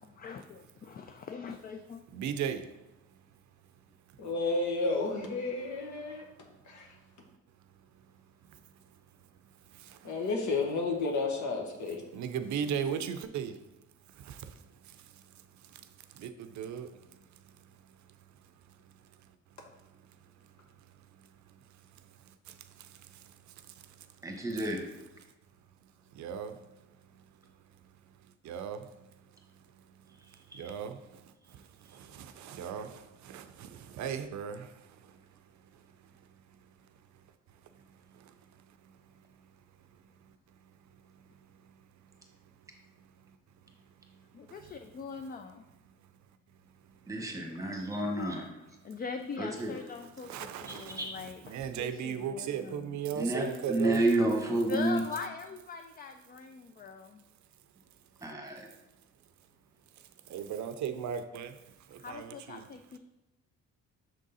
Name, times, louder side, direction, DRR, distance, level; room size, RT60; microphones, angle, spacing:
voice 1, 0.0-2.0 44.3-45.6 47.5-48.4 48.8-53.0 54.7-57.2 62.0-63.0, left 5 dB, 30° left, 0.4 m, -42 dB
voice 2, 2.1-2.7 8.4-8.6 9.7-10.2 12.1-13.6 14.1-17.9 18.8-18.9 20.0-20.3 21.0-24.7 26.1-26.7 27.1-27.2 28.4-29.1 29.7-30.2 30.5-35.4 35.7-36.3 37.9-39.0 40.3-40.4 40.9-41.3 41.6-41.7 44.1-44.2 44.5-45.0 46.9-47.0 47.6-48.0 50.0-54.0 60.0-61.6 61.9-62.7, right 8 dB, 70° right, 0.5 m, -40 dB
voice 3, 4.2-6.2 6.7-6.9 10.0-12.0, left 3 dB, 70° left, 1.2 m, -31 dB
voice 4, 24.2-24.8 30.5-30.6 47.1-48.4 49.4-49.7 50.7-51.1 53.1-55.0 58.2-58.7, right 1 dB, 10° right, 1.2 m, -30 dB
6.3 x 3.7 x 4.0 m
cardioid pair, 90°, 30 cm